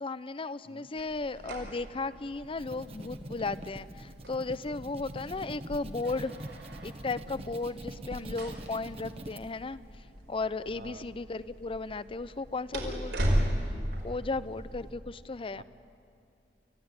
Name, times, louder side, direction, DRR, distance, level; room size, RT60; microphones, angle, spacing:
voice 1, 0.0-6.3 6.8-9.8 10.3-13.4 14.0-15.6, left 3 dB, 30° left, 16 dB, 0.6 m, -35 dB
sound 1, 1.0-14.9, equal, 90° right, 5.3 m, -37 dB
sound 2, 2.4-9.4, right 1 dB, 35° right, 1.3 m, -44 dB
voice 2, 10.8-11.1 14.9-15.0 15.6-15.7, right 2 dB, 60° right, 7 dB, 1.5 m, -49 dB
29.0 x 15.5 x 9.7 m, 2.5 s
head